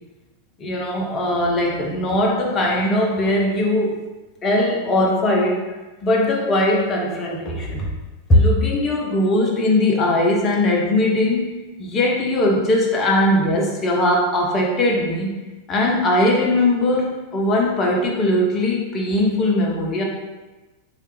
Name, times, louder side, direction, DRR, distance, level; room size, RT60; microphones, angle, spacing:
voice 1, 0.6-3.9 4.4-5.7 6.0-7.9 8.3-15.3 15.7-20.0, left 1 dB, 25° left, -1 dB, 0.7 m, -20 dB
3.2 x 2.4 x 3.1 m, 1.2 s
figure-of-eight pair, 90°, 0 cm